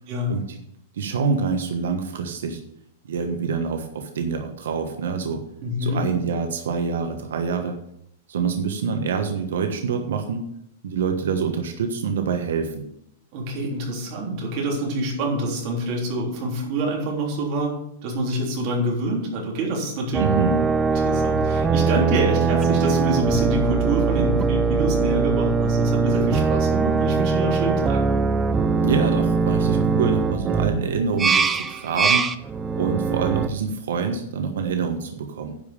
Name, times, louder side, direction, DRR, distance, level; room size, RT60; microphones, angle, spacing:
voice 1, 0.3-0.6 0.9-2.6 3.1-5.4 5.8-7.8 8.3-10.4 10.8-12.8 20.2-20.6 28.8-32.3 32.8-35.5, right 5 dB, 85° right, 5 dB, 1.3 m, -26 dB
voice 2, 5.6-6.0 13.3-17.7 18.0-20.2 20.9-28.0, right 1 dB, 35° right, -2 dB, 3.4 m, -26 dB
sound 1, 20.1-33.5, right 4 dB, 10° right, 0.5 m, -21 dB
10.5 x 5.4 x 6.8 m, 0.75 s
supercardioid pair, 170°, 0 cm